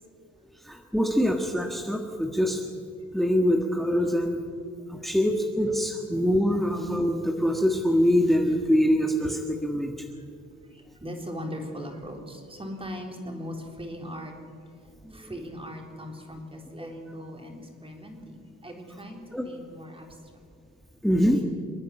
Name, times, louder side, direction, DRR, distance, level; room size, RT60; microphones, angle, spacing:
voice 1, 0.6-2.6 3.1-4.4 4.9-9.9 15.0-15.3 16.8-16.9 19.3-19.4 21.0-21.4, equal, ahead, 2 dB, 1.6 m, -24 dB
voice 2, 10.7-14.3 15.1-19.2 19.4-20.1 21.2-21.4, equal, 20° right, 2 dB, 4.0 m, -39 dB
27.5 x 9.6 x 10.0 m, 2.4 s
cardioid pair, 90°, 30 cm